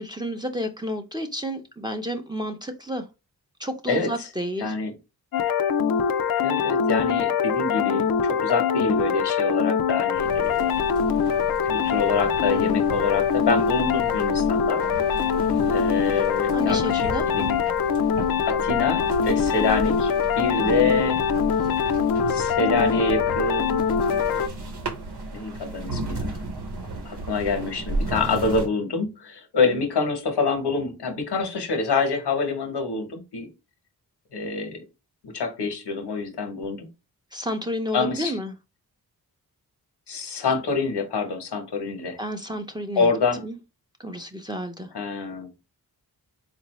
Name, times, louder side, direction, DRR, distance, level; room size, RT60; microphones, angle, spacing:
voice 1, 0.0-3.1 3.6-4.7 15.5-15.8 16.5-17.3 20.6-20.9 21.6-21.7 29.7-29.8 37.3-38.5 42.2-43.1 43.4-43.6 44.0-44.9, equal, 10° right, 0.6 m, -31 dB
voice 2, 4.6-4.9 6.4-10.8 11.6-14.8 15.7-17.6 18.4-21.2 22.3-23.9 25.3-26.4 27.0-33.5 34.3-34.8 35.2-36.9 37.9-38.3 40.1-42.2 43.0-43.4 44.9-45.5, left 4 dB, 90° left, 1.1 m, -26 dB
sound 1, 5.3-24.5, left 7 dB, 65° left, 0.5 m, -23 dB
sound 2, 10.1-28.7, right 2 dB, 85° right, 0.9 m, -34 dB
3.9 x 2.5 x 3.0 m
cardioid pair, 60°, 39 cm